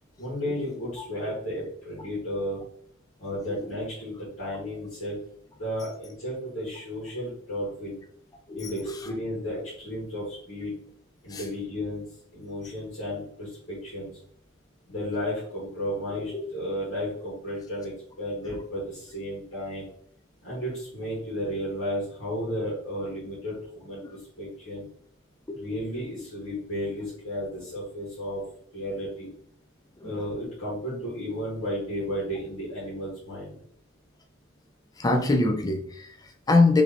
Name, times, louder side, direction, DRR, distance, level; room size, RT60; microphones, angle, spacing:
voice 1, 0.2-2.6 3.2-5.2 5.5-8.0 8.5-10.8 11.2-12.0 12.3-14.1 14.9-19.9 20.4-24.9 25.5-28.4 28.7-29.3 30.0-33.6, equal, 70° left, -6 dB, 1.8 m, -33 dB
voice 2, 8.5-9.0 11.3-11.4 16.3-16.4 25.5-25.6 35.0-36.8, left 2 dB, 20° left, 4 dB, 0.4 m, -24 dB
4.7 x 3.2 x 2.9 m, 0.63 s
head